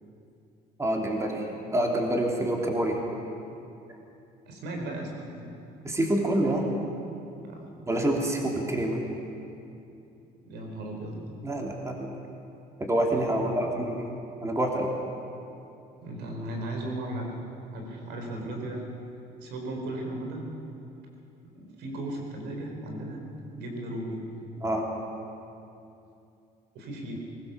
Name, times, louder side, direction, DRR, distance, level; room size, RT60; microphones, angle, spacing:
voice 1, 0.8-3.0 5.8-6.7 7.9-9.0 11.4-12.1 12.8-14.9 24.6-24.8, right 1 dB, 15° right, 0 dB, 3.4 m, -27 dB
voice 2, 4.5-5.5 7.4-7.7 10.4-11.2 13.4-13.7 16.0-17.3 17.7-18.8 19.4-20.4 21.5-23.2 23.5-24.2 26.7-27.2, right 1 dB, 85° right, 2 dB, 4.5 m, -36 dB
22.0 x 20.0 x 7.1 m, 2.7 s
cardioid pair, 110°, 17 cm